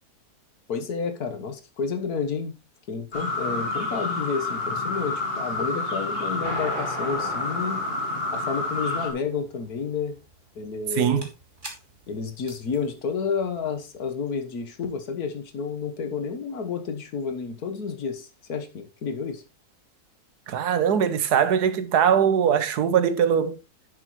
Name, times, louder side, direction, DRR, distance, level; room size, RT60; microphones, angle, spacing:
voice 1, 0.7-2.5 2.9-7.8 8.3-10.1 10.6-11.2 12.1-19.4, left 5 dB, 75° left, 1.8 m, -30 dB
sound 1, 3.1-9.1, left 3 dB, 40° left, 1.9 m, -29 dB
sound 2, 6.4-14.0, right 2 dB, 30° right, 2.1 m, -40 dB
voice 2, 11.0-11.3 20.5-23.6, right 8 dB, 90° right, 1.5 m, -21 dB
9.9 x 7.6 x 3.1 m
omnidirectional pair, 1.6 m